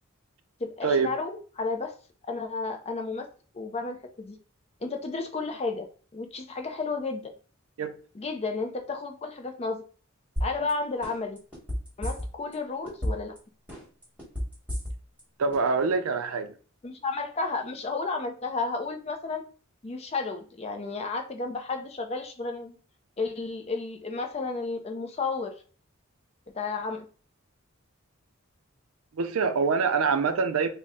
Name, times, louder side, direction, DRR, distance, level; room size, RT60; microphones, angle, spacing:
voice 1, 0.6-1.9 2.3-3.3 3.5-4.4 4.8-5.9 6.1-7.3 8.1-9.8 10.4-11.4 12.0-13.4 16.8-19.4 19.8-22.8 23.2-25.5 26.5-27.1, left 3 dB, 30° left, 0.5 m, -32 dB
sound 1, 10.4-10.7 11.0-12.5 12.9-13.4 13.7-15.2 15.5-15.6, equal, 5° right, 1.2 m, -31 dB
voice 2, 15.4-16.5 29.1-30.7, right 5 dB, 85° right, 0.5 m, -25 dB
4.0 x 2.1 x 3.5 m
head